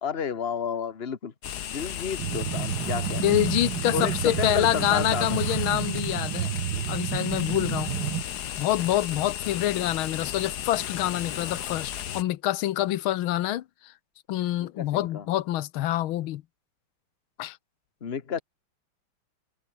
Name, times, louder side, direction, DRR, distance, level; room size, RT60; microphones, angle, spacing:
voice 1, 0.0-3.5 3.9-5.4 14.6-15.3 18.0-18.4, left 7 dB, 30° left, 1.6 m, -32 dB
sound 1, 1.4-12.2, left 10 dB, 60° left, 1.5 m, -35 dB
sound 2, 2.2-8.2, right 11 dB, 65° right, 1.6 m, -30 dB
voice 2, 3.2-6.5 6.9-7.9 8.6-13.6 14.3-16.4 17.4-17.6, left 14 dB, 90° left, 1.6 m, -26 dB
omnidirectional pair, 2.2 m